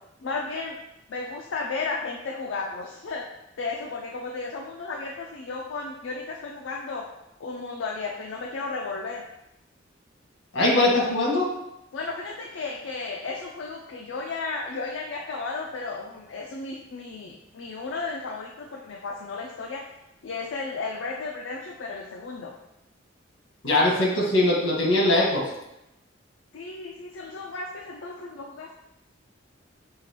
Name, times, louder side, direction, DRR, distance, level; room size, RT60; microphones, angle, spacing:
voice 1, 0.2-0.8 1.1-3.2 3.6-7.0 7.4-9.2 11.9-19.8 20.2-22.5 26.5-28.7, left 3 dB, 70° left, 0 dB, 0.4 m, -34 dB
voice 2, 10.5-11.5 23.6-25.4, left 1 dB, 85° left, -3 dB, 1.5 m, -21 dB
5.6 x 3.0 x 3.0 m, 0.89 s
head